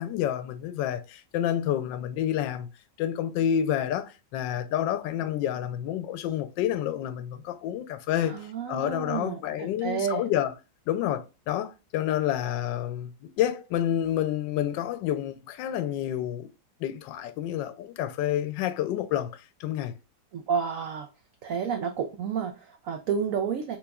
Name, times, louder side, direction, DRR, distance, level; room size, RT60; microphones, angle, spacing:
voice 1, 0.0-2.7 3.0-10.5 10.9-16.5 16.8-19.3 19.6-19.9, left 11 dB, 90° left, 1.3 m, -29 dB
voice 2, 8.2-10.2 20.3-21.1 21.4-23.8, right 7 dB, 70° right, 0.8 m, -30 dB
6.1 x 3.3 x 2.3 m
omnidirectional pair, 1.9 m